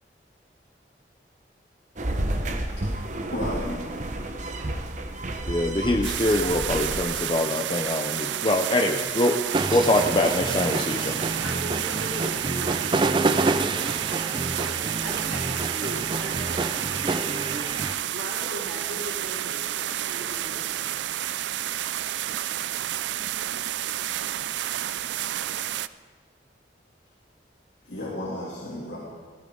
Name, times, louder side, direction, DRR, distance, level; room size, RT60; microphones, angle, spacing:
sound 1, 2.0-7.0, right 1 dB, 45° right, 1.0 m, -31 dB
voice 1, 2.8-3.9 27.8-29.0, left 1 dB, 85° left, -7 dB, 2.9 m, -34 dB
voice 2, 5.5-9.4 9.7-11.3, left 1 dB, 25° left, 3 dB, 0.6 m, -24 dB
sound 2, 6.0-25.9, right 12 dB, 85° right, 0.4 m, -30 dB
sound 3, 9.5-17.9, right 3 dB, 25° right, 0.5 m, -28 dB
voice 3, 11.1-14.2 14.6-14.7 15.0-16.6 16.9-17.3 18.1-20.8, right 1 dB, 65° right, -3 dB, 3.2 m, -39 dB
16.0 x 15.5 x 3.9 m, 1.6 s
head